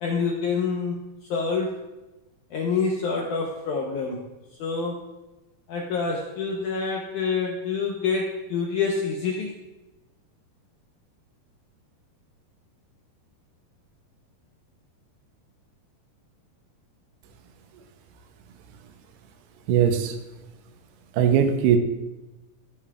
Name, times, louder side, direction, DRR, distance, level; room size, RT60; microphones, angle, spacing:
voice 1, 0.0-1.0 1.3-1.7 2.5-4.2 4.6-5.0 5.7-9.5, left 5 dB, 80° left, -1 dB, 1.8 m, -27 dB
voice 2, 19.7-20.2 21.1-21.8, right 8 dB, 85° right, 6 dB, 2.8 m, -20 dB
15.5 x 7.1 x 2.4 m, 1.1 s
omnidirectional pair, 4.7 m